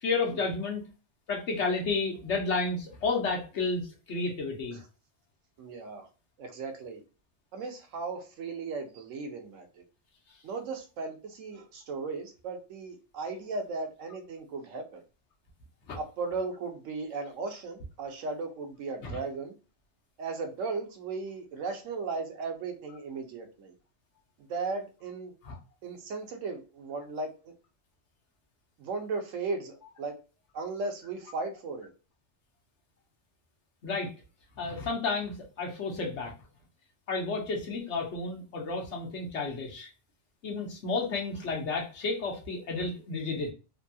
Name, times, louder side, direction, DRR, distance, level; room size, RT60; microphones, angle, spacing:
voice 1, 0.0-0.8 1.3-4.8 15.9-16.0 19.0-19.2 25.4-25.6 33.8-34.1 34.6-36.3 37.1-39.9 40.4-43.5, left 3 dB, 65° left, 1.2 m, -31 dB
voice 2, 5.6-6.1 6.4-7.0 7.5-9.8 10.4-15.0 16.0-19.5 20.2-23.7 24.4-25.3 25.8-27.5 28.8-30.2 30.5-31.9, right 4 dB, 90° right, 1.1 m, -36 dB
3.4 x 2.3 x 2.6 m
omnidirectional pair, 1.3 m